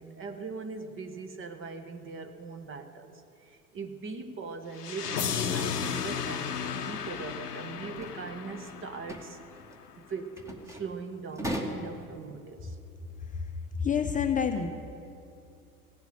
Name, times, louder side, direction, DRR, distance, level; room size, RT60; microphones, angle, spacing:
voice 1, 0.0-9.4 10.0-12.8, right 4 dB, 25° right, 7 dB, 1.1 m, -40 dB
sound 1, 4.8-9.7, left 7 dB, 85° left, 0.7 m, -34 dB
sound 2, 7.7-8.1 8.6-8.7 9.0-9.3 9.5-9.8 10.4-10.9 11.3-11.9, equal, 5° right, 1.5 m, -36 dB
voice 2, 13.8-14.7, left 7 dB, 15° left, 4 dB, 0.8 m, -27 dB
17.5 x 8.1 x 6.7 m, 2.6 s
figure-of-eight pair, 75°, 46 cm